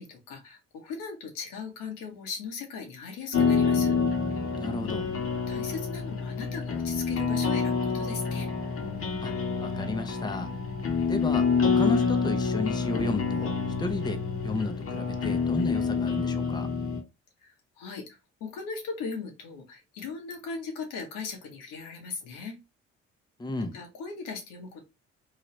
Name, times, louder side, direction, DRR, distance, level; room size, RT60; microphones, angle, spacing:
voice 1, 0.0-3.9 5.5-8.5 17.4-22.6 23.7-24.8, left 5 dB, 80° left, 1.0 m, -38 dB
sound 1, 3.3-17.0, left 5 dB, 45° left, 0.9 m, -27 dB
voice 2, 4.6-5.1 9.2-9.3 9.6-10.5 11.1-16.7 23.4-23.8, left 2 dB, 15° left, 0.6 m, -33 dB
3.0 x 2.4 x 3.1 m
hypercardioid pair, 55°, 32 cm